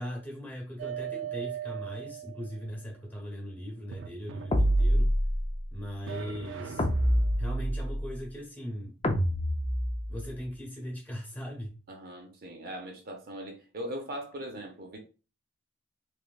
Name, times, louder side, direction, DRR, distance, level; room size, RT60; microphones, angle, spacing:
voice 1, 0.0-5.2 5.7-6.9 7.4-9.0 10.1-11.8, equal, 10° left, 1.2 m, -39 dB
sound 1, 0.8-2.8 3.9-5.2 6.1-7.5, right 9 dB, 90° right, 0.4 m, -39 dB
sound 2, 4.5-5.6 6.8-8.0 9.0-10.3, equal, 30° left, 0.5 m, -26 dB
voice 2, 11.9-15.0, equal, 55° right, 0.8 m, -40 dB
3.4 x 3.0 x 2.3 m
head